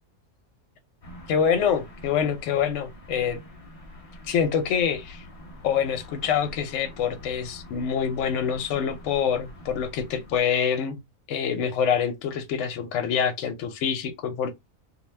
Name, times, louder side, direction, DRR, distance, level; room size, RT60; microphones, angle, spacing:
sound 1, 1.0-10.4, left 1 dB, 40° left, 0.5 m, -45 dB
voice 1, 1.3-3.4 4.3-5.3 5.6-11.0 11.3-14.5, left 7 dB, 70° left, 0.8 m, -26 dB
2.5 x 2.1 x 3.1 m
omnidirectional pair, 1.4 m